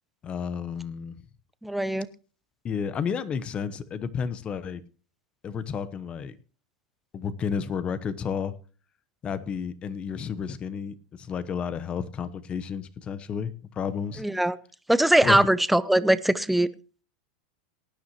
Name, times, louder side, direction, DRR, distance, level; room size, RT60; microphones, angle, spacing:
voice 1, 0.2-1.1 2.6-4.8 5.4-6.4 7.1-8.5 9.2-14.2 15.2-15.4, left 7 dB, 30° left, 1.0 m, -31 dB
voice 2, 1.6-2.1 14.2-14.6 14.9-16.7, right 1 dB, 5° right, 0.7 m, -21 dB
18.0 x 9.8 x 3.0 m
hypercardioid pair, 105°, 4 cm